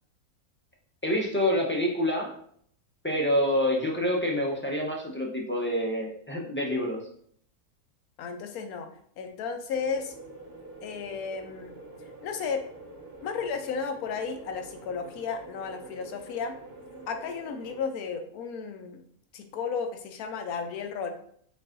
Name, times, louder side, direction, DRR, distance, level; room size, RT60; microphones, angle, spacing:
voice 1, 1.0-2.3 3.0-7.0, left 1 dB, 15° left, -1 dB, 0.5 m, -27 dB
voice 2, 8.2-8.9 9.2-10.1 10.8-11.8 12.2-12.6 13.2-16.5 17.1-19.0 19.3-21.1, left 5 dB, 80° left, 6 dB, 1.1 m, -33 dB
sound 1, 9.7-17.8, right 2 dB, 40° right, 1.3 m, -46 dB
5.3 x 2.6 x 3.7 m, 0.63 s
omnidirectional pair, 1.6 m